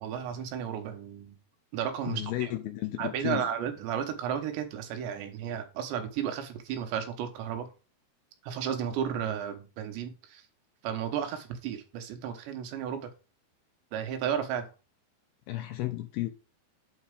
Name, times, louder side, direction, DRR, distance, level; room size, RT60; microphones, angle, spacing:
voice 1, 0.0-1.4 1.7-2.5 3.0-7.7 8.4-10.4 10.8-13.1 13.9-14.7, right 8 dB, 85° right, 3.4 m, -33 dB
voice 2, 2.1-3.5 15.5-16.3, left 16 dB, 85° left, 2.3 m, -33 dB
8.6 x 4.6 x 4.8 m
omnidirectional pair, 5.0 m